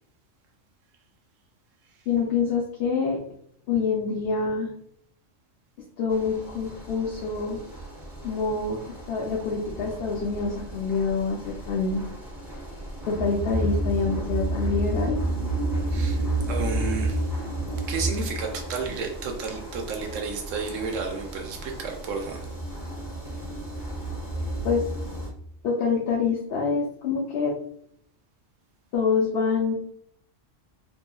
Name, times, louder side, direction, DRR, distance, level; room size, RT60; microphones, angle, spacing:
voice 1, 2.1-3.2 3.7-4.7 6.0-7.6 8.2-8.8 9.1-12.0 13.1-15.2 24.6-24.9 25.6-27.5 28.9-29.7, left 5 dB, 60° left, -3 dB, 0.7 m, -26 dB
sound 1, 6.1-25.3, right 1 dB, ahead, 1.2 m, -32 dB
voice 2, 15.9-17.3 17.6-22.5, right 4 dB, 75° right, 3 dB, 1.0 m, -32 dB
2.9 x 2.6 x 2.2 m, 0.65 s
omnidirectional pair, 1.3 m